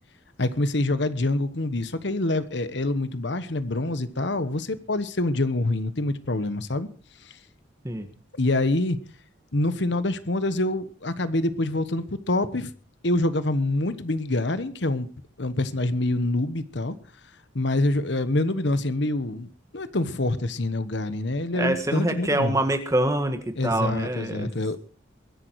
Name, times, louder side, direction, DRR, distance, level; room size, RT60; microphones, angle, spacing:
voice 1, 0.4-6.9 7.2-7.3 8.4-9.0 9.5-12.7 13.0-15.1 15.4-17.0 17.5-19.5 19.7-22.6 23.6-24.8, left 2 dB, 60° left, 13 dB, 1.1 m, -26 dB
voice 2, 21.5-24.5, right 1 dB, 15° right, 7 dB, 1.7 m, -25 dB
22.0 x 10.5 x 4.7 m, 0.39 s
head